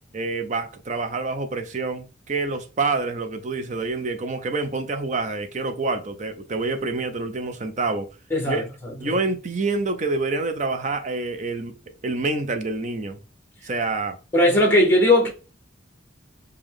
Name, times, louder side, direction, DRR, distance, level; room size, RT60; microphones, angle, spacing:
voice 1, 0.1-8.1 8.5-8.6 9.0-11.7 12.0-13.2 13.6-14.2, right 3 dB, 40° right, 0.6 m, -27 dB
voice 2, 8.3-8.9 14.3-15.3, left 1 dB, 10° left, 1.0 m, -18 dB
5.0 x 2.2 x 3.6 m
head